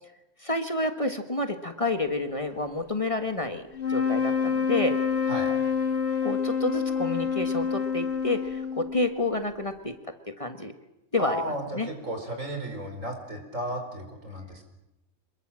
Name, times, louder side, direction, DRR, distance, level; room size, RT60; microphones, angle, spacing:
voice 1, 0.4-3.6 3.9-5.0 6.2-9.9 10.3-10.7 11.1-11.9, left 2 dB, 25° left, 7 dB, 1.5 m, -29 dB
sound 1, 3.7-9.2, left 6 dB, 55° left, 2.2 m, -27 dB
voice 2, 11.2-14.6, right 1 dB, 80° right, 4 dB, 5.2 m, -34 dB
27.0 x 21.5 x 7.5 m, 0.93 s
omnidirectional pair, 1.3 m